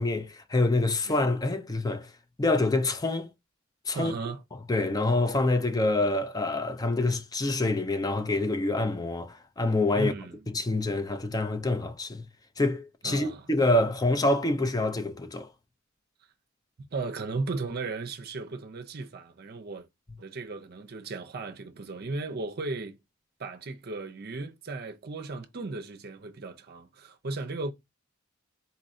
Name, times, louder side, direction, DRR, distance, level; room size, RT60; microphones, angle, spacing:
voice 1, 0.0-2.1 2.4-3.3 3.9-4.1 4.7-10.1 10.5-12.2 12.6-15.5, left 2 dB, 20° left, 0.5 m, -26 dB
voice 2, 3.9-4.4 9.9-10.5 13.0-13.5 16.8-19.9 20.2-23.0 23.4-27.7, right 3 dB, 50° right, 0.6 m, -36 dB
4.1 x 2.6 x 4.1 m
head